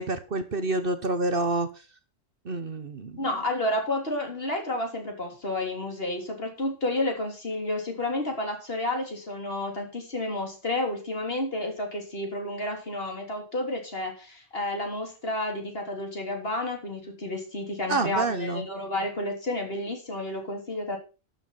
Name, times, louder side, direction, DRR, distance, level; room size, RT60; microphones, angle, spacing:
voice 1, 0.0-1.8 2.4-3.3 17.9-18.7, right 2 dB, 50° right, 10 dB, 1.3 m, -28 dB
voice 2, 3.2-21.0, left 1 dB, 50° left, 2 dB, 3.6 m, -31 dB
12.0 x 7.2 x 5.6 m, 0.32 s
omnidirectional pair, 1.3 m